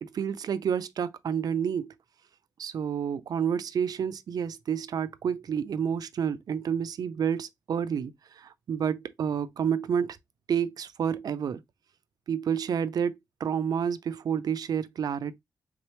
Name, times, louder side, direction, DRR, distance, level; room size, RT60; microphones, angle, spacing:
voice 1, 0.0-1.9 2.6-8.1 8.4-10.2 10.5-11.6 12.3-15.4, right 7 dB, 65° right, 0.4 m, -29 dB
3.5 x 3.3 x 3.0 m
wide cardioid pair, 125°, 7 cm